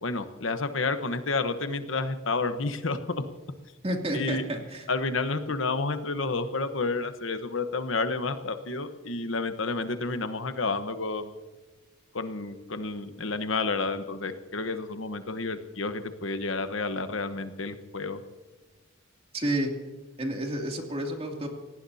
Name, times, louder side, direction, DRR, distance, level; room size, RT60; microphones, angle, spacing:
voice 1, 0.0-3.0 4.1-4.4 4.9-11.3 12.1-18.2, left 3 dB, 70° left, 8 dB, 1.1 m, -30 dB
voice 2, 3.8-4.8 19.3-19.7 20.2-21.5, right 1 dB, 30° right, 1 dB, 2.8 m, -30 dB
26.0 x 18.0 x 2.8 m, 1.3 s
head